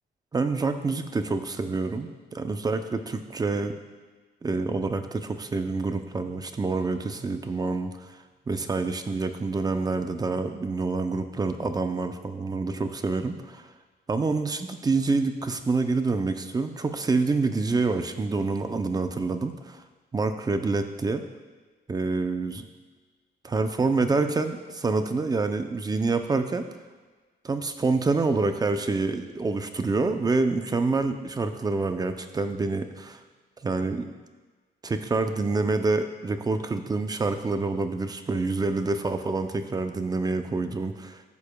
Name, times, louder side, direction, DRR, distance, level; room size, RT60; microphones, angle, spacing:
voice 1, 0.3-3.7 4.4-13.7 14.1-19.8 20.1-21.2 21.9-22.6 23.4-26.7 27.4-33.2 33.6-34.1 34.8-41.2, right 3 dB, 25° right, 8 dB, 0.5 m, -27 dB
13.0 x 7.0 x 2.3 m, 1.4 s
cardioid pair, 115°, 17 cm